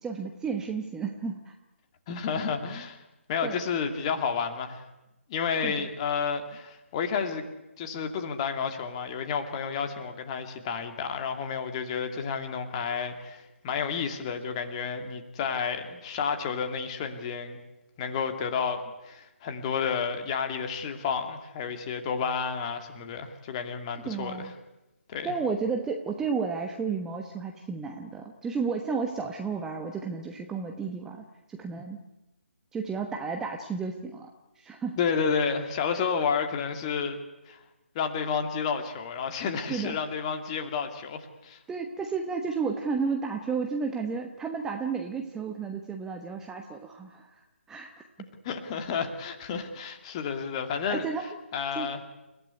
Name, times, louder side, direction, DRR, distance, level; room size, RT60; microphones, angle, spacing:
voice 1, 0.0-1.5 3.4-3.6 5.6-5.9 24.0-24.5 25.2-32.0 32.7-34.3 34.6-35.0 35.9-36.0 39.7-40.0 41.7-47.9 50.9-51.3 51.7-51.9, right 5 dB, 5° right, 3 dB, 1.1 m, -32 dB
voice 2, 2.1-3.0 3.3-4.8 5.3-7.5 7.8-17.6 18.0-24.5 25.1-25.3 35.0-37.2 37.5-37.6 37.9-41.6 48.4-51.1 51.5-52.0, left 6 dB, 25° left, 6 dB, 2.4 m, -31 dB
29.5 x 16.5 x 9.7 m, 0.97 s
figure-of-eight pair, 145°, 7 cm